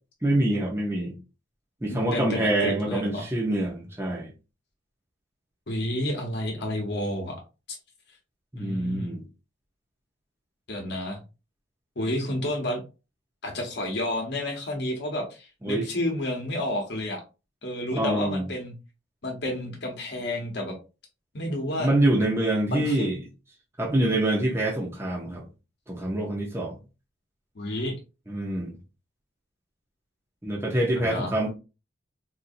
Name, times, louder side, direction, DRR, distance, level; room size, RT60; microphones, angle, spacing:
voice 1, 0.2-1.2 1.8-4.3 8.5-9.2 15.6-15.9 17.9-18.5 21.8-23.2 23.8-25.4 25.9-26.7 28.3-28.8 30.4-31.5, right 1 dB, 15° right, 0.8 m, -25 dB
voice 2, 1.9-3.3 5.7-7.4 7.7-7.8 8.5-9.2 10.7-11.2 12.0-12.8 13.4-17.2 17.6-18.7 19.2-20.7 21.3-21.9 22.7-23.1 27.5-27.9 31.0-31.3, left 1 dB, 60° left, 1.0 m, -30 dB
4.2 x 2.6 x 2.6 m
head